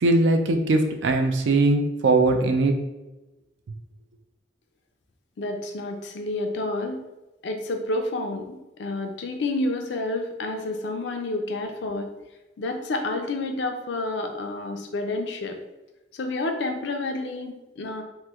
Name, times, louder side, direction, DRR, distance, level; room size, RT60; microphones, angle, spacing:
voice 1, 0.0-2.7, right 2 dB, 80° right, 5 dB, 0.4 m, -20 dB
voice 2, 5.4-7.0 7.4-12.1 12.6-15.6 16.1-18.0, left 2 dB, 65° left, 5 dB, 0.4 m, -29 dB
3.0 x 2.1 x 3.4 m, 1.0 s
head